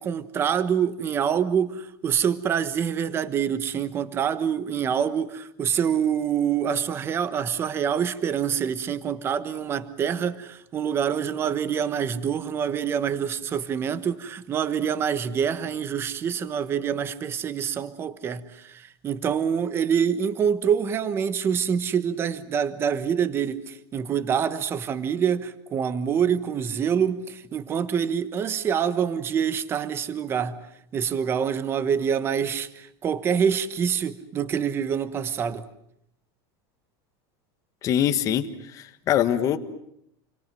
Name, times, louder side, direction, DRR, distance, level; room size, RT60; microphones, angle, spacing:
voice 1, 0.0-30.6 30.9-35.6, right 7 dB, 20° right, 1.2 m, -26 dB
voice 2, 37.8-39.6, left 10 dB, 25° left, 1.5 m, -23 dB
29.5 x 24.0 x 7.7 m
supercardioid pair, 180°, 13 cm